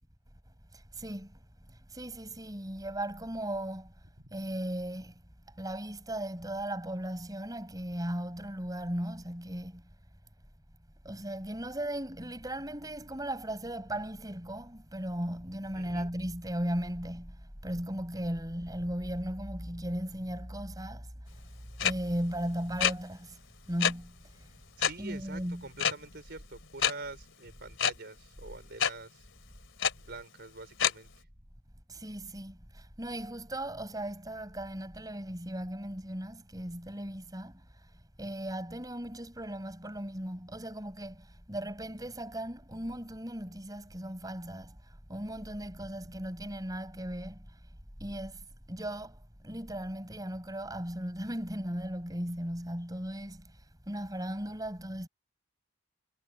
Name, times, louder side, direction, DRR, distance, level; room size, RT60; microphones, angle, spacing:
voice 1, 0.7-1.4 1.7-3.9 4.3-5.1 5.5-9.8 11.0-21.1 21.8-23.4 23.7-24.5 25.0-25.7 31.9-37.9 38.2-47.6 48.0-55.1, right 1 dB, 20° right, 7.5 m, -37 dB
voice 2, 15.7-16.1 24.8-29.3 30.0-31.3, right 3 dB, 50° right, 4.5 m, -45 dB
sound 1, 21.8-21.9 22.8-22.9 23.8-23.9 24.8-24.9 25.8-25.9 26.8-26.9 27.8-27.9 28.8-28.9 29.8-29.9 30.8-30.9, left 8 dB, 65° left, 3.2 m, -25 dB
head